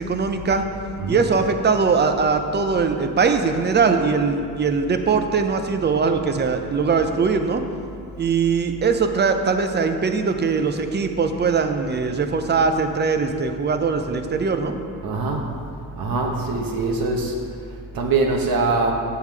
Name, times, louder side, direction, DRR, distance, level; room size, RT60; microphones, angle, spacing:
voice 1, 0.0-0.6 1.1-7.6 8.2-14.8, right 5 dB, 25° right, 7 dB, 0.6 m, -21 dB
voice 2, 0.8-1.3 15.0-15.4 16.0-17.4 17.9-18.9, right 3 dB, 55° right, 1 dB, 1.0 m, -23 dB
7.1 x 5.7 x 4.7 m, 2.4 s
cardioid pair, 90°, 41 cm